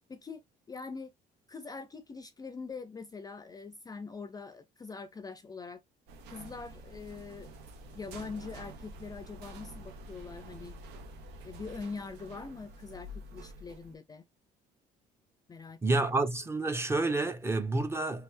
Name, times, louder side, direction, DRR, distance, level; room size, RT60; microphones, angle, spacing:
voice 1, 0.1-0.4 0.7-1.1 1.5-5.8 6.3-7.5 7.9-10.8 11.4-14.3 15.5-16.2, left 4 dB, 20° left, 0.4 m, -43 dB
sound 1, 6.1-13.9, right 1 dB, 85° right, 1.0 m, -48 dB
voice 2, 15.8-18.2, right 2 dB, 15° right, 0.7 m, -29 dB
3.4 x 3.2 x 3.2 m
cardioid pair, 110°, 17 cm